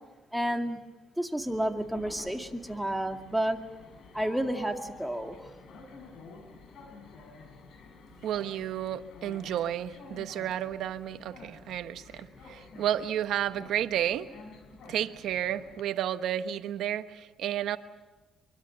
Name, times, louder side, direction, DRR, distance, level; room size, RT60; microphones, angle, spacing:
voice 1, 0.3-0.8 1.2-3.6 4.1-5.5, right 1 dB, 5° right, 4 dB, 2.3 m, -31 dB
Train, 1.4-15.8, left 4 dB, 70° left, 4.7 m, -50 dB
voice 2, 8.2-14.3 14.9-17.8, right 11 dB, 80° right, 10 dB, 1.2 m, -32 dB
25.0 x 23.5 x 7.9 m, 1.2 s
cardioid pair, 90°, 0 cm